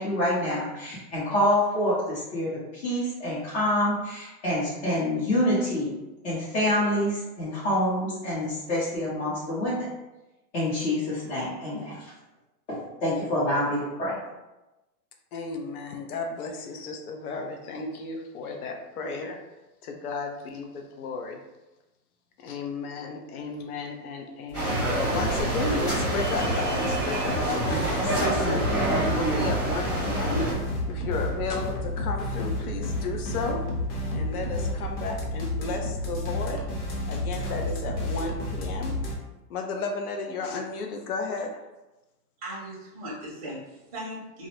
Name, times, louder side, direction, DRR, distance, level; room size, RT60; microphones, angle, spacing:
voice 1, 0.0-5.9 6.2-9.9 10.5-12.1 12.7-14.2, left 1 dB, 45° left, -11 dB, 0.9 m, -27 dB
voice 2, 15.3-19.4 19.8-21.4 22.4-30.4 30.9-33.6 34.1-36.6 37.1-38.9 39.5-41.5, left 4 dB, 65° left, 3 dB, 0.6 m, -33 dB
sound 1, 24.5-39.2, left 1 dB, 85° left, 0.9 m, -31 dB
sound 2, 24.5-30.5, right 2 dB, 15° left, 0.9 m, -27 dB
voice 3, 42.4-44.5, right 1 dB, 25° right, -7 dB, 0.6 m, -38 dB
2.4 x 2.0 x 2.9 m, 1.0 s
supercardioid pair, 170°, 49 cm